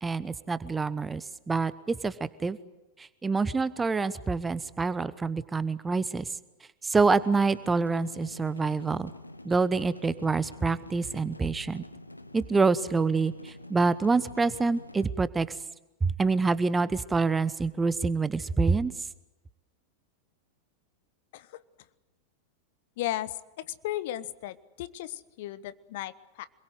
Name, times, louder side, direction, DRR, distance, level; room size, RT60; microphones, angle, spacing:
voice 1, 0.0-2.1 2.4-2.6 3.0-6.3 6.8-9.1 9.4-11.8 12.3-15.5 16.0-18.9, right 4 dB, 15° right, 16 dB, 1.0 m, -26 dB
sound 1, 7.0-15.1, left 1 dB, 85° left, 1.2 m, -47 dB
voice 2, 23.0-26.5, left 13 dB, 50° left, 16 dB, 1.1 m, -35 dB
27.0 x 22.0 x 8.0 m, 1.0 s
figure-of-eight pair, 90°, 0 cm